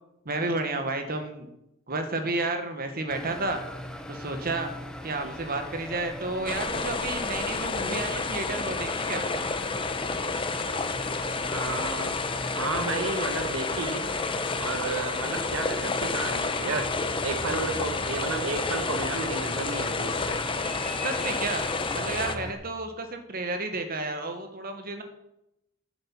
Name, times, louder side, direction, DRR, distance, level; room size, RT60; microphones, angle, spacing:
voice 1, 0.2-1.5 1.9-3.6 4.1-4.7 5.0-9.2 21.0-21.6 21.9-25.0, right 2 dB, 45° right, 6 dB, 1.5 m, -31 dB
sound 1, 3.1-22.5, equal, 5° left, 1.0 m, -40 dB
sound 2, 6.5-22.4, left 4 dB, 25° left, 0.8 m, -30 dB
voice 2, 11.5-12.2 12.6-14.0 14.6-16.9 17.2-20.4, right 3 dB, 70° right, 5 dB, 1.1 m, -32 dB
10.5 x 7.9 x 7.2 m, 0.85 s
head